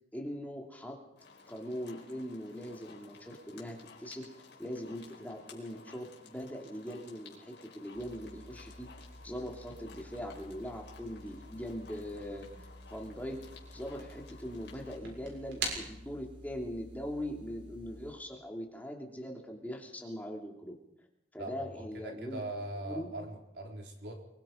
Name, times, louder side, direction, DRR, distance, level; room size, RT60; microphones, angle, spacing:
voice 1, 0.1-1.0 1.5-4.3 4.6-8.9 9.2-12.5 12.9-13.4 13.7-20.7 21.3-22.5 22.8-23.1, equal, 10° left, 0 dB, 2.8 m, -41 dB
sound 1, 1.2-15.0, left 4 dB, 70° left, 5.0 m, -56 dB
sound 2, 7.9-18.1, right 2 dB, 85° right, 7.0 m, -46 dB
voice 2, 21.4-24.3, right 1 dB, 70° right, 1 dB, 4.0 m, -41 dB
24.5 x 23.0 x 5.2 m, 0.85 s
head